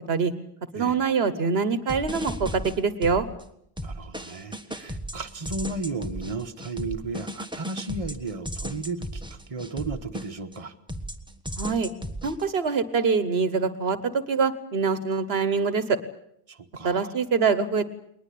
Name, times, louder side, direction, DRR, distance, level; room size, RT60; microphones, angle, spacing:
voice 1, 0.7-3.3 11.6-11.9 12.2-16.0 16.8-17.9, right 5 dB, 75° right, 13 dB, 1.3 m, -24 dB
sound 1, 1.9-3.4 3.8-10.6 10.9-12.4, equal, 5° right, 1.3 m, -35 dB
voice 2, 3.8-10.7 16.5-17.1, right 3 dB, 35° right, 5 dB, 1.3 m, -34 dB
21.0 x 20.0 x 8.5 m, 0.73 s
omnidirectional pair, 1.1 m